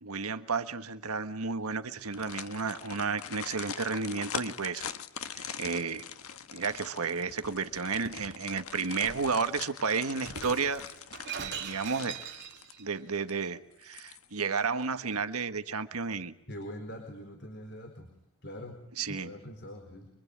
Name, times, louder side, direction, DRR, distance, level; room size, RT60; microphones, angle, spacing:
voice 1, 0.0-4.9 5.3-6.0 6.5-10.8 11.3-12.2 12.8-16.3 19.0-19.3, right 5 dB, 85° right, 1.5 m, -32 dB
sound 1, 2.0-12.9 13.3-13.4 13.8-14.5 14.8-14.9, left 7 dB, 75° left, 1.5 m, -43 dB
Shatter, 7.4-8.3 9.0-9.3 10.2-12.8, right 6 dB, 50° right, 3.3 m, -42 dB
voice 2, 16.5-18.1 18.4-18.8 19.1-20.1, equal, 50° left, 4.3 m, -43 dB
27.5 x 24.0 x 8.7 m
head